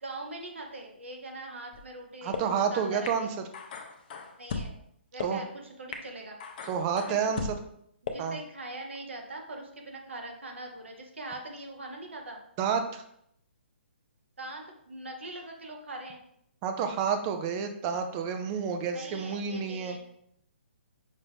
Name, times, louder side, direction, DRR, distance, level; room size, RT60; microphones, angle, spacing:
voice 1, 0.0-3.3 4.4-4.7 5.1-5.5 5.8-6.4 7.1-7.5 8.0-12.4 14.4-16.2 18.9-20.0, right 2 dB, 85° right, 1 dB, 1.0 m, -42 dB
sound 1, 1.7-1.8 2.3-2.4 3.1-3.2 3.5-4.7 5.2-5.3 5.9-6.0 6.4-7.5 8.1-8.2, left 5 dB, 45° left, 0.6 m, -36 dB
voice 2, 2.2-3.3 5.2-5.4 6.6-7.4 8.2-8.4 12.6-13.0 16.6-20.0, right 6 dB, 25° right, 6 dB, 0.5 m, -29 dB
5.6 x 2.5 x 3.4 m, 0.71 s
hypercardioid pair, 145°, 6 cm